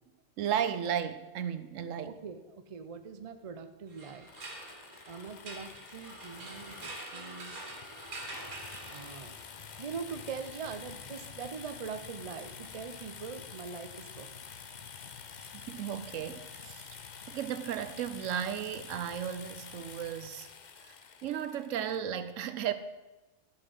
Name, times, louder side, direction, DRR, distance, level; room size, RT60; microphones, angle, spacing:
voice 1, 0.4-2.2 15.4-17.0 17.3-20.5 20.8-20.9 21.2-22.7, right 9 dB, 70° right, 12 dB, 0.9 m, -35 dB
voice 2, 2.0-4.3 5.1-7.6 8.9-9.4 9.8-14.3, right 5 dB, 45° right, 8 dB, 0.4 m, -42 dB
sound 1, 3.9-9.6, right 2 dB, 90° right, 2.1 m, -45 dB
sound 2, 4.3-22.0, left 6 dB, 50° left, 0.6 m, -48 dB
12.0 x 7.0 x 5.4 m, 1.1 s
omnidirectional pair, 1.5 m